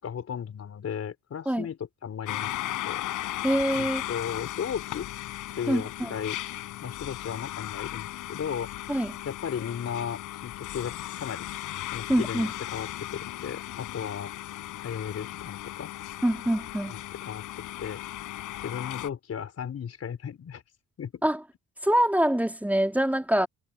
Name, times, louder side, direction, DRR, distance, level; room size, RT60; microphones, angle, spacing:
voice 1, 0.0-2.5 2.8-3.0 3.7-5.1 5.5-6.4 6.8-8.7 9.2-11.5 11.9-14.3 14.8-15.9 16.9-18.0 18.6-20.6 21.0-21.2, left 8 dB, 55° left, 4.7 m, -35 dB
sound 1, 2.3-19.1, left 14 dB, 85° left, 6.3 m, -36 dB
voice 2, 3.4-4.0 5.7-6.2 8.9-9.1 12.1-12.5 16.2-17.0 21.2-21.4 21.8-23.5, right 1 dB, 5° right, 3.0 m, -25 dB
cardioid pair, 90°, 30 cm